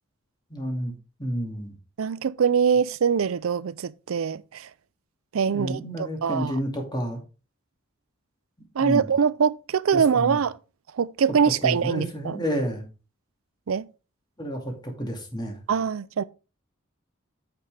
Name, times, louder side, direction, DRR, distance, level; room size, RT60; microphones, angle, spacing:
voice 1, 0.5-0.9 1.2-1.7 5.5-7.2 8.8-9.1 9.9-10.4 11.6-12.8 14.4-15.6, equal, 20° left, 2.3 m, -30 dB
voice 2, 2.0-4.7 5.3-6.5 8.7-10.6 10.9-12.4 13.7-13.9 15.7-16.2, right 6 dB, 80° right, 0.5 m, -23 dB
9.1 x 6.5 x 3.3 m
head